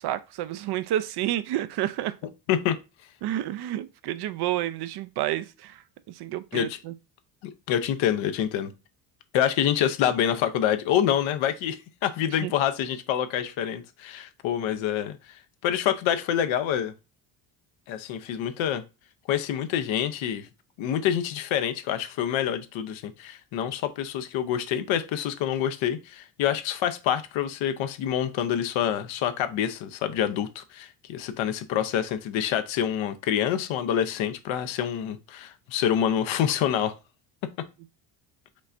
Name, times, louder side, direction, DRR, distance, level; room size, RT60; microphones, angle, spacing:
voice 1, 0.0-2.2 3.2-6.9 12.4-12.5, right 13 dB, 55° right, 0.5 m, -30 dB
voice 2, 7.4-8.7 9.3-16.9 17.9-18.8 19.3-20.5 20.8-36.9, left 10 dB, 70° left, 0.8 m, -27 dB
5.2 x 3.3 x 2.6 m
supercardioid pair, 85°, 49 cm